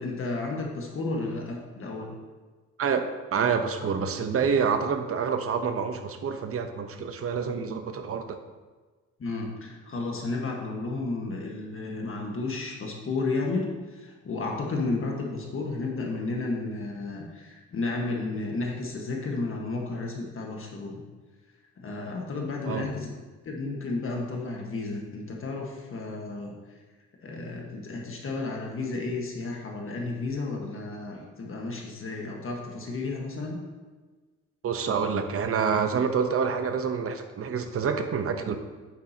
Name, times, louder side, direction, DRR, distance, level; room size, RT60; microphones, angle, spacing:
voice 1, 0.0-2.2 9.2-21.0 21.8-23.1 23.4-26.8 27.2-33.6, left 3 dB, 45° left, 0 dB, 1.5 m, -32 dB
voice 2, 2.8-8.4 22.7-22.9 34.6-38.6, right 6 dB, 50° right, 7 dB, 0.9 m, -27 dB
8.7 x 7.7 x 2.9 m, 1.3 s
cardioid pair, 90°, 30 cm